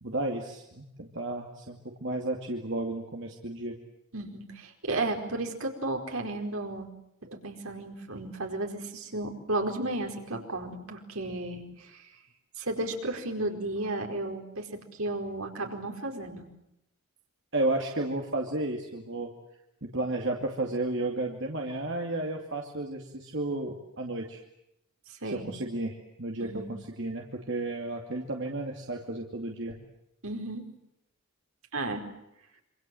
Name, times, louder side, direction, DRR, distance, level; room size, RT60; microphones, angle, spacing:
voice 1, 0.0-3.8 17.5-19.3 19.8-24.4 25.2-29.8, right 2 dB, 55° right, 0 dB, 2.5 m, -33 dB
voice 2, 4.1-6.9 7.2-12.1 12.6-16.5 25.1-25.5 26.4-26.7 30.2-30.7 31.7-32.1, right 2 dB, 75° right, 3 dB, 4.8 m, -34 dB
26.5 x 26.0 x 7.8 m, 0.82 s
head